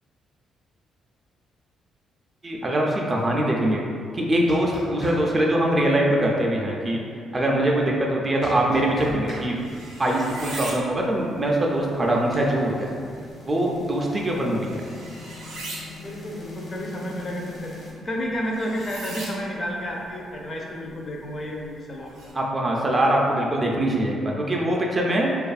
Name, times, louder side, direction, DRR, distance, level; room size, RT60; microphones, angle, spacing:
voice 1, 2.4-3.8 4.1-7.0 7.3-9.7 10.0-12.9 13.5-14.8 22.3-25.3, right 1 dB, 25° right, -2 dB, 0.3 m, -23 dB
sound 1, 4.3-5.2 8.4-9.4, equal, 80° left, 1.1 m, -36 dB
sound 2, 8.8-22.3, right 2 dB, 85° right, 0.5 m, -42 dB
sound 3, 10.9-17.9, left 4 dB, 60° left, 0.8 m, -44 dB
voice 2, 16.0-22.1, equal, 40° left, -1 dB, 0.4 m, -31 dB
2.6 x 2.3 x 2.3 m, 2.3 s
cardioid pair, 90°, 0 cm